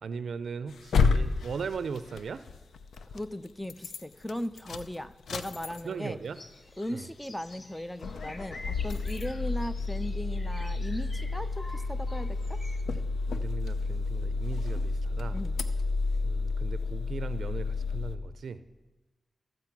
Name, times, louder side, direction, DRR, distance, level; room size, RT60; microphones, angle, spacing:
voice 1, 0.0-2.4 5.8-6.4 6.9-7.1 13.3-15.4 16.2-18.6, right 5 dB, 75° right, 13 dB, 0.4 m, -38 dB
sound 1, 0.7-3.3 3.6-4.0 4.3-6.1 6.5-6.6 6.8-6.9 7.5-7.7 8.0-18.2, left 4 dB, 90° left, 0.5 m, -31 dB
voice 2, 3.1-6.2 6.8-12.6 15.3-15.6, left 1 dB, 10° left, 13 dB, 0.5 m, -37 dB
sound 2, 6.2-12.8, left 2 dB, 45° left, 1.0 m, -49 dB
13.5 x 7.7 x 5.9 m, 1.1 s
cardioid pair, 70°, 0 cm